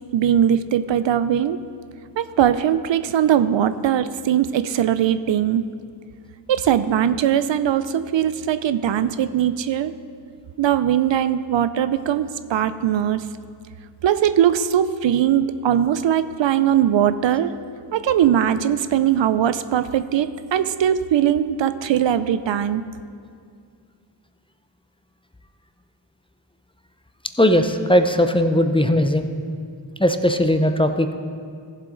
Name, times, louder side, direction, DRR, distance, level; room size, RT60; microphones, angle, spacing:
voice 1, 0.1-1.6 2.2-5.6 6.5-9.9 10.6-13.2 14.0-17.5 17.9-22.8, right 10 dB, 70° right, 12 dB, 0.5 m, -20 dB
voice 2, 27.4-29.3 30.0-31.1, left 1 dB, 10° left, 7 dB, 0.6 m, -18 dB
14.5 x 7.5 x 3.8 m, 2.3 s
cardioid pair, 45°, 47 cm